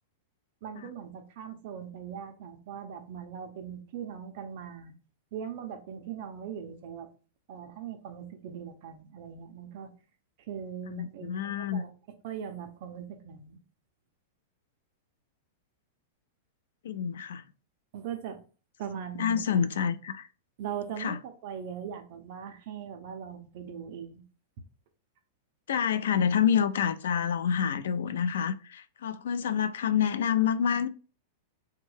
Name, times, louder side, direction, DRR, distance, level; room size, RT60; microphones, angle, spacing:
voice 1, 0.6-4.9 5.3-7.1 7.5-9.9 10.5-11.9 12.2-13.6 17.9-18.4 18.8-19.4 20.6-24.2, right 8 dB, 40° right, 0.4 m, -40 dB
voice 2, 10.9-11.8 16.8-17.4 19.2-20.3 21.0-21.2 25.7-30.9, left 8 dB, 85° left, 0.3 m, -28 dB
3.4 x 2.2 x 3.2 m
supercardioid pair, 175°, 0 cm